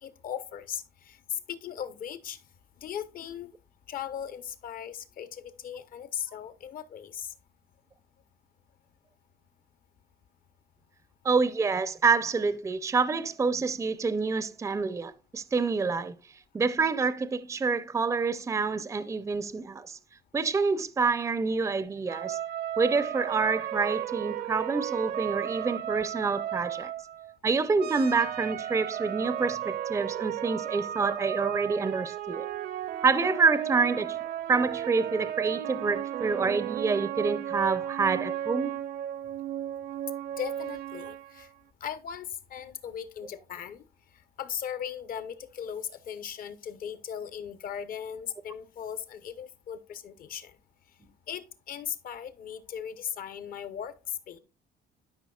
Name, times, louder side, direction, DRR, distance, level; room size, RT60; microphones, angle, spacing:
voice 1, 0.0-2.4 2.8-3.5 3.9-7.3 40.4-41.5 41.8-43.8 44.4-50.5 51.3-54.4, left 9 dB, 55° left, 0.9 m, -38 dB
voice 2, 11.2-16.1 16.5-20.0 20.3-22.4 22.8-26.9 27.4-32.5 33.0-34.2 34.5-38.8, right 4 dB, 15° right, 0.5 m, -27 dB
sound 1, 22.1-27.3 27.8-41.5, right 11 dB, 65° right, 0.6 m, -34 dB
12.5 x 5.2 x 2.3 m
cardioid pair, 110°, 17 cm